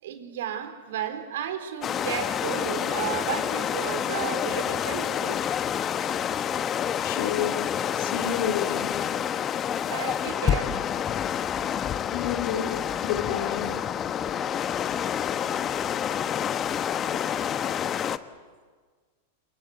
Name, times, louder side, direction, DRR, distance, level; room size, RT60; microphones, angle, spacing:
voice 1, 0.0-5.4 9.9-10.7, right 10 dB, 65° right, 8 dB, 3.7 m, -33 dB
sound 1, 1.8-18.2, left 9 dB, 30° left, 1.1 m, -28 dB
voice 2, 7.0-9.0 12.1-13.7, left 9 dB, 60° left, 5 dB, 3.2 m, -30 dB
28.0 x 25.0 x 8.2 m, 1.5 s
hypercardioid pair, 95°, 0 cm